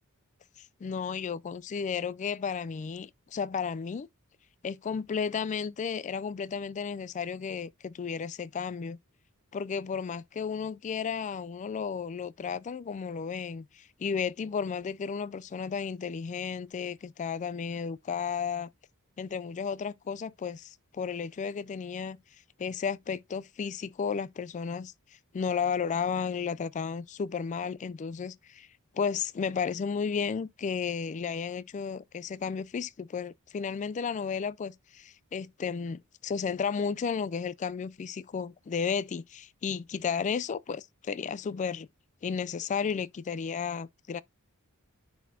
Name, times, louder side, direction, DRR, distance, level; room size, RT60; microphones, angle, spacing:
voice 1, 0.6-4.1 4.6-9.0 9.5-18.7 19.2-22.2 22.6-24.9 25.3-28.7 28.9-41.9 42.2-44.2, left 6 dB, 35° left, 0.3 m, -33 dB
10.0 x 4.2 x 2.7 m
head